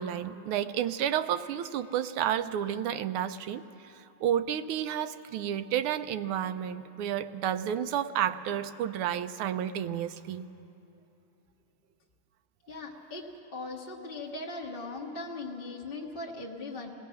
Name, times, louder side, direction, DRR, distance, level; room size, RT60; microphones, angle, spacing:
voice 1, 0.0-10.5, right 10 dB, 85° right, 10 dB, 1.5 m, -31 dB
voice 2, 12.7-16.9, left 2 dB, 30° left, -3 dB, 1.3 m, -39 dB
26.0 x 18.5 x 5.7 m, 2.8 s
omnidirectional pair, 2.4 m